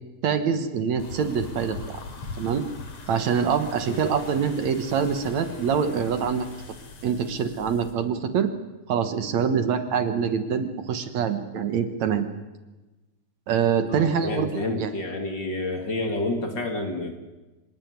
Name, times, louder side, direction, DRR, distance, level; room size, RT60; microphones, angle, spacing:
voice 1, 0.2-2.0 2.4-2.6 3.1-6.5 7.0-8.5 8.9-12.3 13.5-14.9, right 7 dB, 70° right, 8 dB, 2.6 m, -25 dB
sound 1, 1.0-7.9, left 3 dB, 60° left, 4.4 m, -41 dB
voice 2, 13.9-17.1, left 2 dB, 40° left, 4 dB, 2.6 m, -29 dB
25.5 x 19.0 x 9.6 m, 1.1 s
omnidirectional pair, 3.4 m